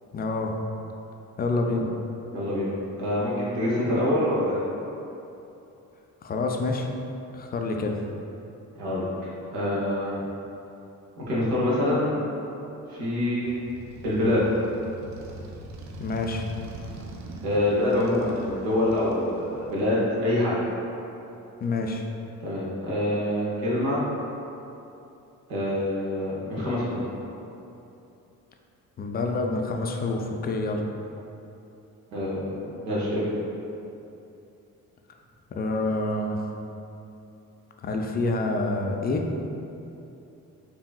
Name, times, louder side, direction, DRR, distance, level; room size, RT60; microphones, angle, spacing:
voice 1, 0.1-0.5 1.4-1.8 6.2-6.9 7.3-8.0 16.0-16.4 21.6-22.0 29.0-30.8 35.5-36.4 37.8-39.3, left 2 dB, 25° left, 2 dB, 0.3 m, -27 dB
voice 2, 2.3-2.7 3.0-4.6 8.8-9.1 9.5-10.2 11.2-12.2 12.9-13.6 14.0-14.6 17.4-20.6 22.4-24.0 25.5-27.0 32.1-33.3, left 1 dB, 80° right, -7 dB, 0.8 m, -25 dB
Motorcycle, 13.4-20.1, right 1 dB, 40° right, 0.5 m, -42 dB
4.6 x 2.7 x 2.3 m, 2.8 s
hypercardioid pair, 40°, 44 cm